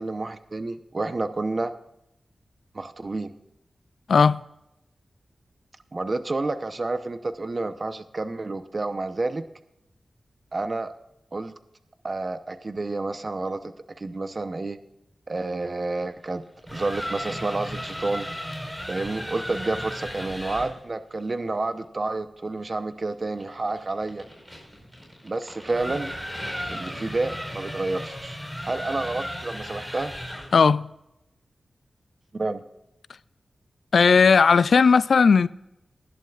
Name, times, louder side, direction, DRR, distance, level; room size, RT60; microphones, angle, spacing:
voice 1, 0.0-1.7 2.7-3.3 5.9-9.5 10.5-10.9 11.3-11.5 12.0-14.8 15.3-16.4 16.7-18.3 18.9-24.2 25.2-26.1 26.7-28.4 28.6-30.1 32.3-32.6, right 2 dB, 45° right, 0.8 m, -29 dB
sound 1, 16.5-20.8 23.4-30.6, equal, 5° right, 4.7 m, -35 dB
voice 2, 30.5-30.9 33.9-35.5, left 5 dB, 85° left, 0.3 m, -16 dB
19.5 x 11.0 x 2.4 m
wide cardioid pair, 85°, 0 cm